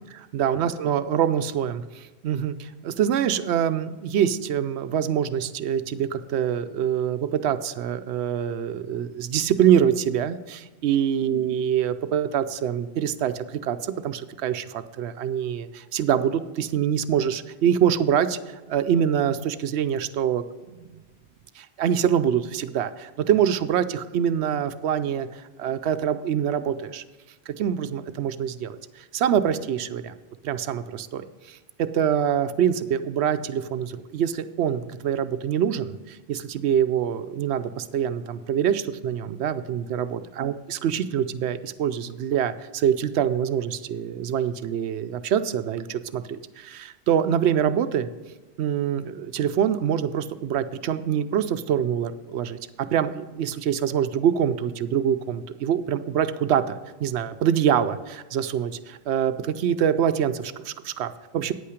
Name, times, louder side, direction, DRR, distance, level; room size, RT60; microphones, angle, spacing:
voice 1, 0.1-18.4 18.7-20.4 20.9-21.0 21.6-27.0 27.5-30.1 30.4-48.1 48.6-61.5, right 9 dB, 85° right, 12 dB, 0.9 m, -25 dB
9.5 x 8.5 x 4.9 m, 1.2 s
omnidirectional pair, 1.1 m